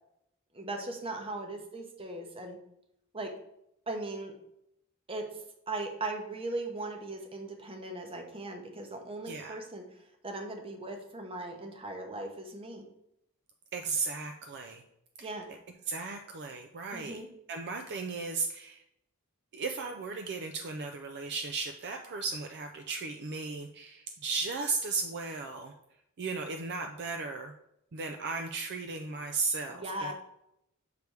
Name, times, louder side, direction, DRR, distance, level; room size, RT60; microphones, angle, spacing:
voice 1, 0.5-2.6 3.1-3.3 3.9-4.3 5.1-12.8 15.2-15.5 16.9-17.3 29.7-30.1, right 2 dB, 25° right, 4 dB, 0.8 m, -38 dB
voice 2, 9.2-9.6 13.7-14.8 15.2-15.6 15.9-17.2 17.5-18.8 19.5-25.7 26.2-27.5 27.9-30.1, right 4 dB, 50° right, 5 dB, 0.4 m, -35 dB
6.7 x 3.3 x 4.6 m, 0.79 s
head